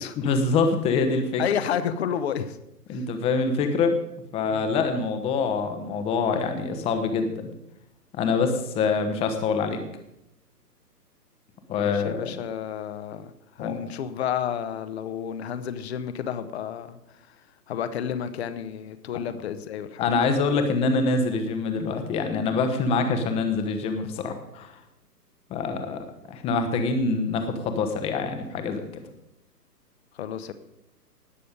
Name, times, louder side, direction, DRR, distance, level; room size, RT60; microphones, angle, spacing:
voice 1, 0.2-1.4 2.9-3.9 4.3-7.5 8.1-9.8 11.7-12.3 13.6-13.7 20.0-24.7 25.5-28.9, left 4 dB, 10° left, 7 dB, 0.9 m, -25 dB
voice 2, 1.4-2.6 2.9-3.0 4.5-4.7 11.8-13.3 13.6-17.0 17.3-17.4 17.7-20.1 30.1-30.5, left 9 dB, 40° left, 12 dB, 1.0 m, -31 dB
18.5 x 6.7 x 5.2 m, 0.84 s
figure-of-eight pair, 125°, 49 cm